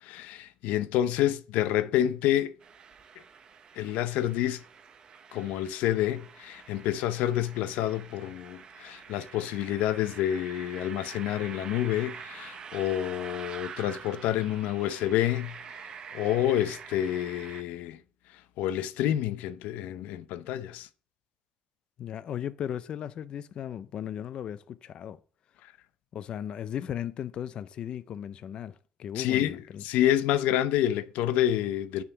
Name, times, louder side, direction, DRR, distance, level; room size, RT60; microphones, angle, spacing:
voice 1, 0.0-2.5 3.8-4.6 5.3-15.5 16.1-18.0 18.6-20.9 29.2-32.0, left 12 dB, 90° left, 0.6 m, -28 dB
sound 1, 2.6-17.6, right 6 dB, 35° right, 0.6 m, -46 dB
voice 2, 22.0-25.2 26.1-29.8, left 9 dB, 40° left, 0.4 m, -36 dB
9.5 x 3.7 x 6.9 m
cardioid pair, 170°, 2 cm